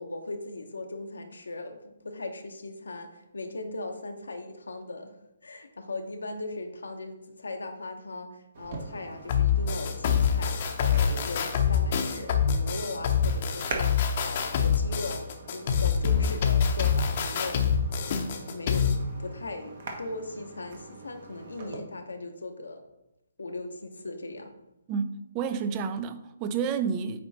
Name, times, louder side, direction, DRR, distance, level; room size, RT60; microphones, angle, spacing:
voice 1, 0.0-5.1 5.4-17.7 18.0-22.8 23.4-24.5, left 2 dB, 75° left, 0.8 m, -38 dB
sound 1, 8.5-21.8, right 3 dB, 50° right, 1.2 m, -43 dB
sound 2, 9.3-19.0, left 7 dB, 45° left, 0.8 m, -25 dB
voice 2, 24.9-27.2, right 6 dB, 25° right, 0.4 m, -30 dB
8.5 x 3.0 x 4.1 m
figure-of-eight pair, 135°, 0 cm